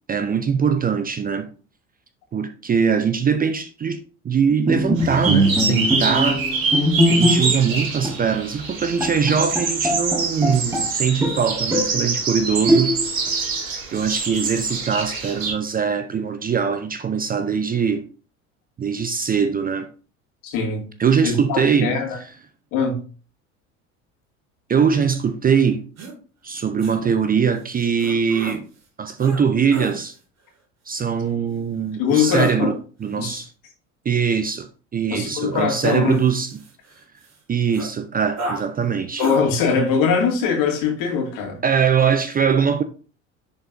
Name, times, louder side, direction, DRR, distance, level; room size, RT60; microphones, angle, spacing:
voice 1, 0.1-1.5 2.3-6.5 7.1-13.0 13.9-18.1 18.8-19.9 21.0-21.9 24.7-25.8 26.4-28.6 29.0-30.1 30.9-33.5 34.0-36.6 37.5-39.2 41.6-42.8, right 6 dB, 20° right, 0.6 m, -22 dB
Bowed string instrument, 4.7-7.7 8.0-8.2 8.7-8.8 9.0-10.9 11.2-12.0 12.7-13.3, equal, 5° right, 1.2 m, -21 dB
sound 1, 5.0-15.5, right 4 dB, 80° right, 1.6 m, -25 dB
voice 2, 20.4-20.8 21.2-22.2 22.7-23.0 32.0-32.7 33.2-33.4 35.1-36.2 39.2-41.6, left 6 dB, 55° left, 2.3 m, -21 dB
sound 2, 26.0-26.1 26.8-27.0 28.0-28.6 29.2-29.4 29.7-30.0 32.1-32.5 35.6-36.9 37.3-37.4 37.7-37.9 38.4-38.6 39.2-39.4, right 3 dB, 40° right, 2.2 m, -32 dB
10.0 x 4.4 x 2.6 m
figure-of-eight pair, 65°, 40 cm